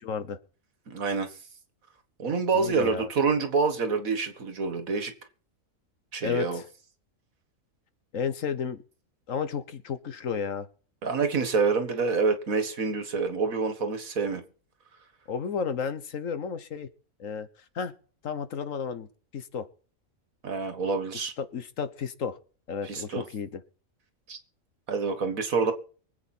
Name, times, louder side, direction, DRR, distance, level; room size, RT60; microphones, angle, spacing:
voice 1, 0.0-0.4 2.5-3.1 6.2-6.6 8.1-8.8 9.3-10.7 15.3-16.9 17.2-17.5 17.7-17.9 18.2-19.1 19.3-19.7 21.4-22.4 22.7-23.6, left 6 dB, 70° left, 12 dB, 1.5 m, -32 dB
voice 2, 0.9-1.3 2.2-5.1 6.1-6.6 11.0-14.4 20.4-21.3 22.8-23.2 24.3-24.4 24.9-25.7, right 4 dB, 85° right, 8 dB, 2.1 m, -27 dB
24.0 x 8.3 x 4.4 m, 0.42 s
omnidirectional pair, 1.4 m